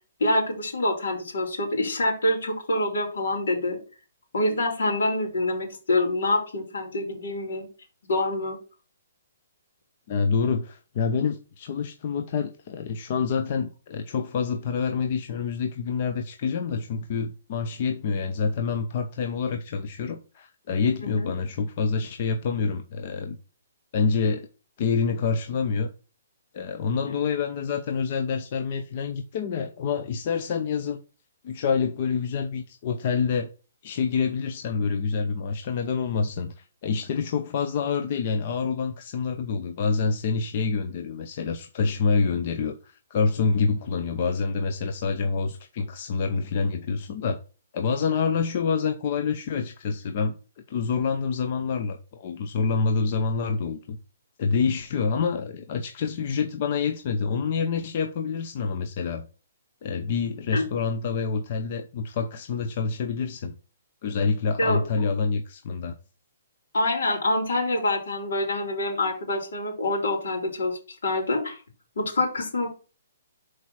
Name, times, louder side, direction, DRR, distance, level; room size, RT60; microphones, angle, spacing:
voice 1, 0.2-3.8 4.3-7.7 8.0-8.6 21.0-21.3 26.9-27.1 60.5-60.6 64.6-64.8 66.7-71.6 72.0-72.7, left 1 dB, 75° left, 3.4 m, -26 dB
voice 2, 10.1-23.4 23.9-24.5 24.8-25.9 26.5-31.0 31.4-33.5 33.8-47.4 47.7-54.0 54.4-59.2 59.8-63.5 64.0-66.0, left 5 dB, 40° left, 0.7 m, -27 dB
6.3 x 4.7 x 4.2 m
hypercardioid pair, 160°, 0 cm